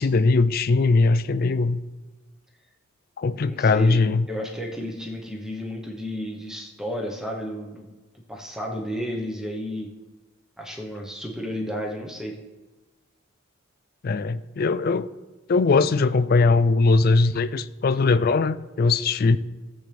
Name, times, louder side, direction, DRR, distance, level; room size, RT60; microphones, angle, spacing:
voice 1, 0.0-1.8 3.2-4.3 14.0-15.1 15.5-19.4, left 3 dB, 45° left, 0.3 m, -20 dB
voice 2, 3.5-4.0 4.3-7.9 8.3-9.9 10.6-12.4, equal, 5° right, 1.0 m, -32 dB
15.0 x 7.6 x 3.4 m
head